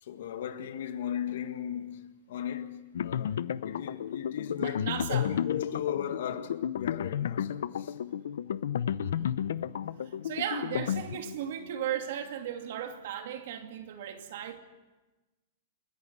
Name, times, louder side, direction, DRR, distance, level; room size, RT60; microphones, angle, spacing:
voice 1, 0.0-7.9, left 9 dB, 65° left, 1.7 m, -36 dB
sound 1, 2.9-11.5, left 9 dB, 80° left, 0.7 m, -32 dB
voice 2, 4.6-5.3 9.0-9.4 10.0-14.6, right 10 dB, 55° right, 2.6 m, -36 dB
30.0 x 11.5 x 9.4 m
supercardioid pair, 165°, 0 cm